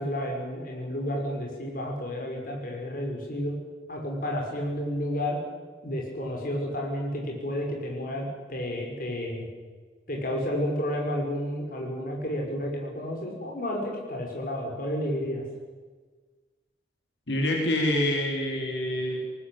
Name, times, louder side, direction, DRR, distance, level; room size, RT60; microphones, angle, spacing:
voice 1, 0.0-3.5 3.9-5.4 5.8-9.5 10.1-15.4, equal, 50° left, 0 dB, 5.7 m, -31 dB
voice 2, 17.3-19.2, left 1 dB, 85° left, 1 dB, 4.1 m, -26 dB
20.5 x 19.5 x 8.8 m, 1.4 s
head